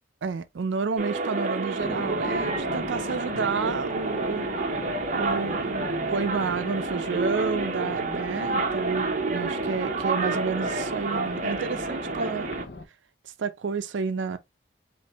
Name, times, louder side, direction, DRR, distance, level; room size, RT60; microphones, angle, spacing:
voice 1, 0.2-4.5 5.1-12.5 13.2-14.4, right 5 dB, 75° right, 0.4 m, -30 dB
sound 1, 1.0-12.6, right 3 dB, 40° right, 0.7 m, -29 dB
sound 2, 1.8-12.9, left 2 dB, 55° left, 0.7 m, -39 dB
5.5 x 2.5 x 2.9 m
head